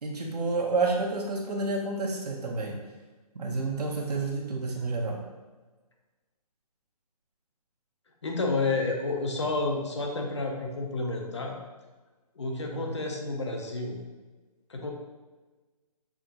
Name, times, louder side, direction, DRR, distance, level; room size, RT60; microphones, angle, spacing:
voice 1, 0.0-2.7 3.3-5.2 12.7-12.9, right 3 dB, 80° right, 0 dB, 1.0 m, -29 dB
voice 2, 8.2-11.6 12.4-14.0 14.7-14.9, left 3 dB, 45° left, 1 dB, 0.7 m, -30 dB
6.0 x 2.8 x 2.6 m, 1.3 s
hypercardioid pair, 175°, 20 cm